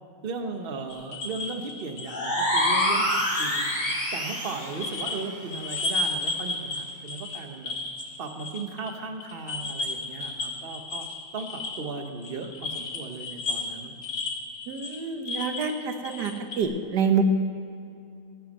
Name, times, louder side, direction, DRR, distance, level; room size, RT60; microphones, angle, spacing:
voice 1, 0.2-3.7 4.1-7.7 8.2-11.1 11.3-13.9, right 4 dB, 40° right, 5 dB, 1.2 m, -36 dB
sound 1, 0.9-5.2 5.5-8.9 9.2-16.6, left 3 dB, 75° left, 2.2 m, -33 dB
sound 2, 2.1-4.8, equal, 25° left, 3.0 m, -26 dB
voice 2, 14.7-17.2, right 6 dB, 90° right, 6 dB, 1.6 m, -27 dB
15.5 x 9.2 x 6.5 m, 2.6 s
omnidirectional pair, 1.7 m